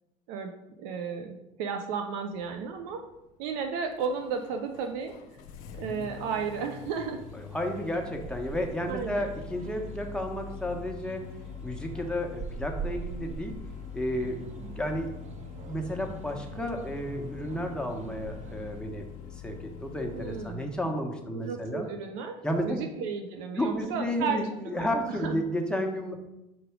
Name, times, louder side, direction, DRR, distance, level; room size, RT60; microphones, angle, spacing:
voice 1, 0.3-3.1 3.4-5.1 5.8-7.2 8.9-9.3 20.1-20.7 21.3-22.4 22.6-25.4, right 6 dB, 80° right, 5 dB, 0.6 m, -34 dB
Engine starting, 2.3-20.7, left 7 dB, 80° left, 0.7 m, -44 dB
sound 1, 6.8-18.8, right 6 dB, 40° right, 0.4 m, -44 dB
voice 2, 7.5-11.2 11.6-13.6 13.9-14.4 14.7-15.1 15.7-21.9 22.4-22.8 23.5-26.2, equal, 5° left, 2 dB, 1.3 m, -32 dB
5.2 x 4.8 x 4.6 m, 0.91 s
hypercardioid pair, 65°, 18 cm